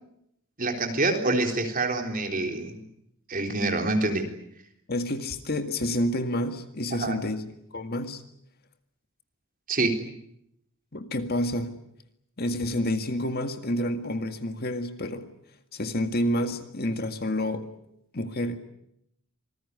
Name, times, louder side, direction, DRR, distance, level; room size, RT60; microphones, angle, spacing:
voice 1, 0.6-2.8 3.3-4.3 6.9-7.2 9.7-10.1, right 2 dB, 40° right, 3.8 m, -26 dB
voice 2, 4.9-7.4 7.7-8.2 10.9-11.7 12.4-15.3 15.7-17.7 18.1-18.6, left 1 dB, 45° left, 1.9 m, -29 dB
26.5 x 20.0 x 9.7 m
head